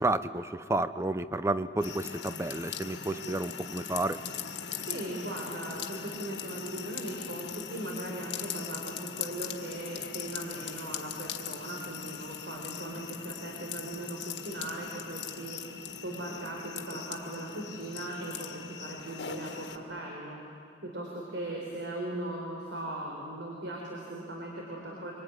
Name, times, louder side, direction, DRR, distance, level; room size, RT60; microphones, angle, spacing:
voice 1, 0.0-4.2, right 2 dB, 15° right, 13 dB, 0.6 m, -31 dB
sound 1, 1.8-19.8, left 7 dB, 80° left, 1.8 m, -40 dB
voice 2, 4.9-15.6 16.0-20.4 20.8-25.1, right 1 dB, 80° right, -1 dB, 4.3 m, -39 dB
25.0 x 24.5 x 9.8 m, 2.5 s
head